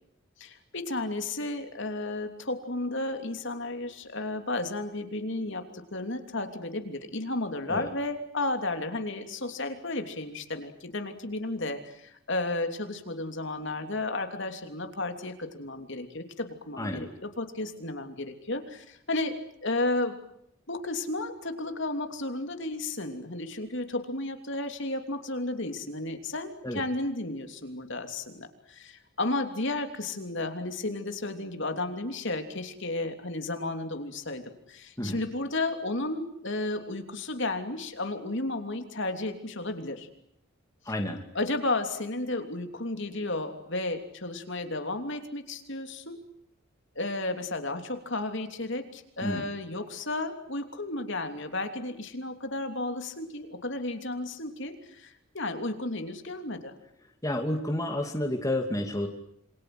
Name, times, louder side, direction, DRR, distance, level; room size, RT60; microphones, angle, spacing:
voice 1, 0.4-5.6 5.9-20.2 20.7-40.1 41.3-46.2 46.9-56.7, left 2 dB, 55° left, 6 dB, 3.1 m, -33 dB
voice 2, 16.8-17.1 26.6-26.8 35.0-35.2 40.9-41.2 49.2-49.5 57.2-59.1, left 1 dB, 15° left, 4 dB, 2.6 m, -30 dB
28.0 x 25.5 x 7.9 m, 0.73 s
head